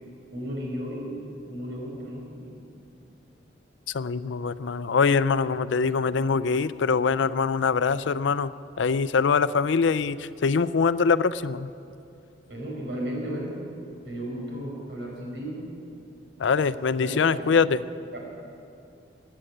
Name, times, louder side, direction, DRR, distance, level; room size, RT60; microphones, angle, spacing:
voice 1, 0.3-2.6 12.5-13.6 14.0-15.7 17.0-17.2 17.4-17.6, equal, 80° right, -2 dB, 4.8 m, -34 dB
voice 2, 3.9-8.5 8.8-11.7 16.4-17.8, left 5 dB, 85° left, 15 dB, 0.5 m, -23 dB
16.0 x 9.0 x 9.9 m, 2.6 s
head